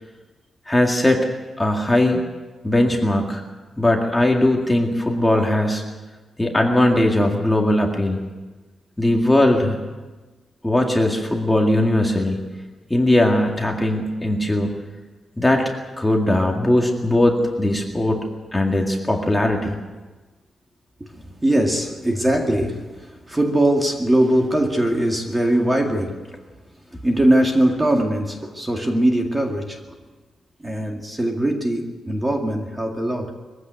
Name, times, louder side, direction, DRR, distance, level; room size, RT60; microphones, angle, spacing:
voice 1, 0.7-1.3 1.6-2.3 2.6-3.4 3.8-5.8 6.4-8.2 9.0-9.8 10.6-12.4 12.9-14.7 15.4-15.7 16.0-18.2 18.5-19.8, left 1 dB, 5° left, 1 dB, 2.0 m, -19 dB
voice 2, 21.0-26.3 27.0-29.8 30.6-33.3, right 1 dB, 10° right, 2 dB, 2.1 m, -21 dB
22.0 x 15.5 x 9.4 m, 1.2 s
wide cardioid pair, 175°, 0 cm